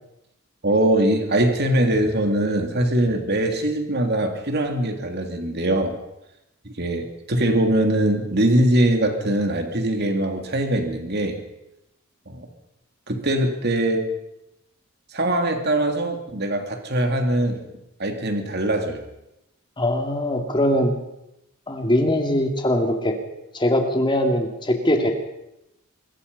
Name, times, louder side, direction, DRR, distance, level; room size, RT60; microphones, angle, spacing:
voice 1, 0.6-5.9 6.6-11.4 12.3-12.5 13.1-14.1 15.1-17.6 18.0-19.0, right 1 dB, 50° right, 5 dB, 3.1 m, -22 dB
voice 2, 19.8-20.9 21.7-23.1 23.5-25.1, left 1 dB, 20° left, 4 dB, 2.7 m, -21 dB
25.0 x 21.5 x 5.6 m, 0.89 s
head